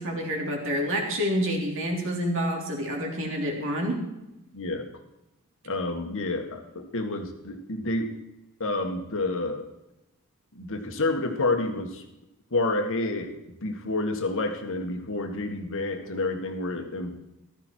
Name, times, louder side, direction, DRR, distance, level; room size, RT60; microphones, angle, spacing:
voice 1, 0.0-4.0, equal, 60° right, 1 dB, 3.4 m, -28 dB
voice 2, 4.5-4.9 5.6-8.1 8.6-9.7 10.5-12.0 12.5-13.3 13.6-17.2, left 2 dB, 65° left, 5 dB, 1.8 m, -29 dB
15.0 x 13.0 x 4.6 m, 0.92 s
head